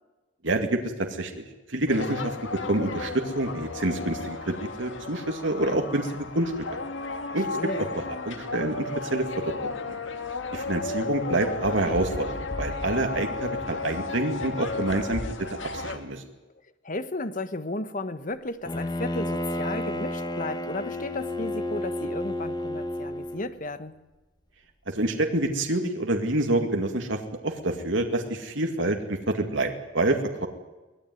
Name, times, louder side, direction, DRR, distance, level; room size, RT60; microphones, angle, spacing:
voice 1, 0.4-2.4 2.7-6.8 7.3-7.5 7.8-9.5 9.8-10.0 10.5-15.2 15.5-16.2 24.9-30.5, right 2 dB, 65° right, 4 dB, 2.3 m, -27 dB
sound 1, 1.9-16.0, left 3 dB, 70° left, 2.0 m, -34 dB
voice 2, 7.3-7.9 16.4-16.5 16.8-23.9, left 2 dB, 40° left, 12 dB, 1.4 m, -34 dB
Bowed string instrument, 18.7-23.5, left 1 dB, 20° left, 1.7 m, -31 dB
24.0 x 19.0 x 9.5 m, 1.1 s
head